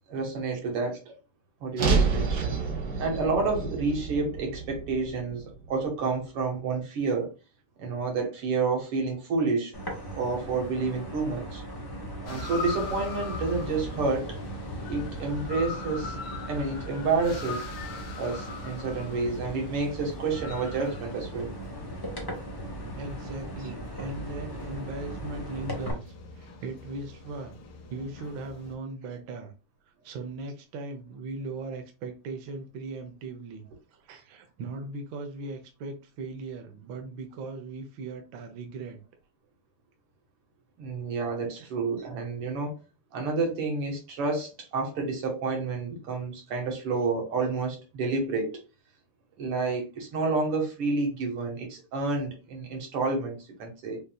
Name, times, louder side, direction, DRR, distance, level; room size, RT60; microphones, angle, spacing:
voice 1, 0.1-1.0 1.6-2.6 3.0-7.3 7.8-9.7 10.1-11.6 12.2-14.4 14.9-16.2 16.5-17.7 18.2-21.5 40.8-42.7 43.1-48.6 49.4-54.0, right 4 dB, 85° right, 2.4 m, -29 dB
sound 1, 1.8-6.0, right 4 dB, 55° right, 1.5 m, -29 dB
sound 2, 9.7-25.9, right 1 dB, 20° left, 0.7 m, -39 dB
sound 3, 12.3-28.7, left 3 dB, 80° left, 1.8 m, -41 dB
voice 2, 23.0-27.5 27.9-29.5 30.0-33.6 33.9-39.0 41.6-41.7, right 3 dB, 70° right, 1.4 m, -38 dB
6.4 x 2.7 x 2.2 m
omnidirectional pair, 2.4 m